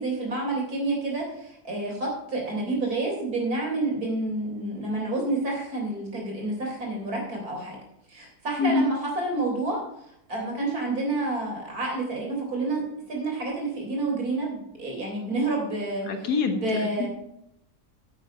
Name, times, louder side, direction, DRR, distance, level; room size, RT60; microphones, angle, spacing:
voice 1, 0.0-7.8 8.1-12.8 13.1-17.1, right 2 dB, 65° right, 0 dB, 4.1 m, -29 dB
voice 2, 16.1-16.6 17.0-17.1, left 4 dB, 80° left, 6 dB, 1.9 m, -24 dB
9.5 x 8.2 x 5.5 m, 0.76 s
omnidirectional pair, 1.7 m